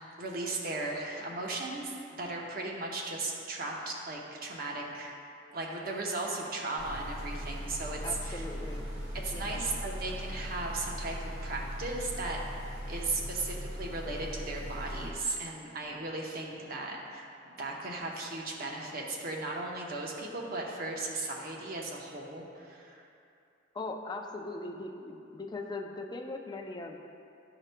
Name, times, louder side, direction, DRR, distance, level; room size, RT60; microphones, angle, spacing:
voice 1, 0.2-5.2 5.5-8.4 9.1-11.2 11.4-12.4 12.9-23.0, right 2 dB, 50° right, -1 dB, 0.9 m, -36 dB
sound 1, 6.8-15.1, equal, 90° right, 1.4 m, -39 dB
voice 2, 8.0-8.9 9.3-9.7 23.7-27.0, left 2 dB, 20° left, 2 dB, 0.4 m, -40 dB
12.0 x 4.9 x 2.2 m, 2.6 s
head